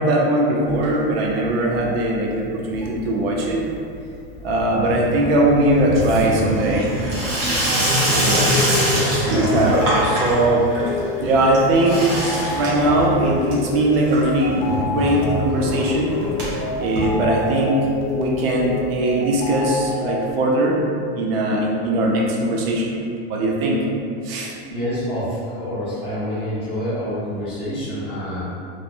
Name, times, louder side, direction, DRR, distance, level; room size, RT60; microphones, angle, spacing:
voice 1, 0.0-3.6 4.4-6.9 8.0-8.5 9.1-9.8 10.0-10.7 11.2-12.1 12.6-16.1 16.8-17.8 18.1-20.8 21.2-22.9 23.3-23.8 24.2-24.5, right 1 dB, 65° right, -2 dB, 0.5 m, -20 dB
Water tap faucet / Sink (filling or washing), 0.7-1.5 1.7-2.3 2.6-17.8 18.2-18.3 18.5-18.6 18.8-18.9 19.9-20.0, equal, 45° right, 1.0 m, -24 dB
sound 1, 8.2-20.3, left 3 dB, 40° left, 0.4 m, -29 dB
voice 2, 24.7-28.4, equal, 15° left, -11 dB, 0.7 m, -27 dB
3.1 x 2.0 x 2.5 m, 2.5 s
supercardioid pair, 160°, 32 cm